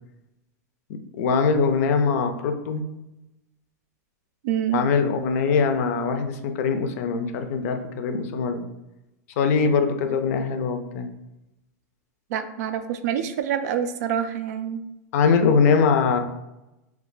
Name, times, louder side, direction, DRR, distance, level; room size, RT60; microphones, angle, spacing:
voice 1, 1.1-2.8 4.7-8.7 9.4-11.1 15.1-16.2, left 5 dB, 60° left, 7 dB, 0.4 m, -22 dB
voice 2, 4.4-4.8 12.3-14.8, right 9 dB, 65° right, 9 dB, 0.3 m, -26 dB
2.3 x 2.2 x 3.8 m, 0.93 s
supercardioid pair, 135°, 9 cm